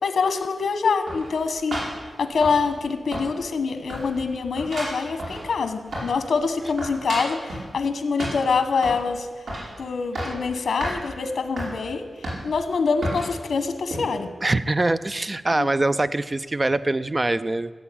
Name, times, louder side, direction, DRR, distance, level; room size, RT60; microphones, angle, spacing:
voice 1, 0.0-1.8 2.2-9.3 9.8-14.3 15.5-15.7, left 5 dB, 75° left, 9 dB, 1.2 m, -25 dB
sound 1, 1.1-2.9 3.1-3.6 3.9-6.3 6.6-7.7 8.2-9.1 9.5-9.7 10.0-10.4 10.8-11.0 11.6-11.7 12.2-12.6 13.0-13.3 13.9-14.0, right 1 dB, 85° right, 5.2 m, -32 dB
voice 2, 14.4-17.7, right 2 dB, 25° right, 14 dB, 0.5 m, -23 dB
16.0 x 8.2 x 8.6 m, 1.4 s
wide cardioid pair, 135°, 0 cm